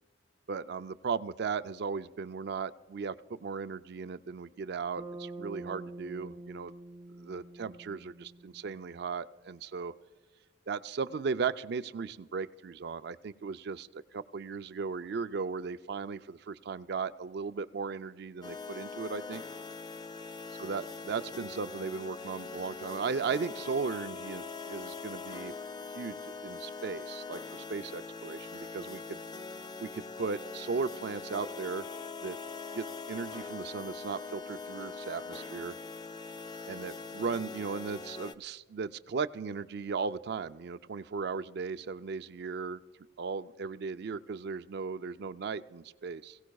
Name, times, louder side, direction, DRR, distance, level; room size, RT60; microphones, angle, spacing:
voice 1, 0.5-6.7 7.2-9.9 10.7-19.4 20.6-25.5 25.9-29.2 29.8-31.9 32.2-32.4 32.7-35.7 36.7-42.8 43.2-46.4, right 5 dB, 60° right, 13 dB, 0.4 m, -36 dB
Bass guitar, 5.0-9.3, right 2 dB, 20° right, 1.2 m, -46 dB
sound 1, 18.4-38.3, left 4 dB, 20° left, 0.3 m, -42 dB
22.5 x 16.5 x 2.3 m, 1.4 s
head